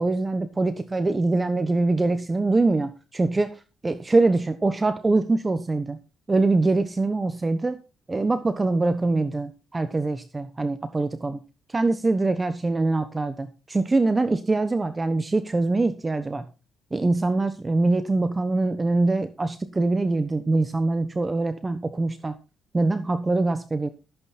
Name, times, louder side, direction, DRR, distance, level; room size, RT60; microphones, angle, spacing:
voice 1, 0.0-6.0 6.3-7.8 8.1-11.4 11.7-16.4 16.9-22.4 22.7-23.9, right 2 dB, 20° right, 11 dB, 1.1 m, -23 dB
14.5 x 8.5 x 4.2 m, 0.31 s
cardioid pair, 90°, 0 cm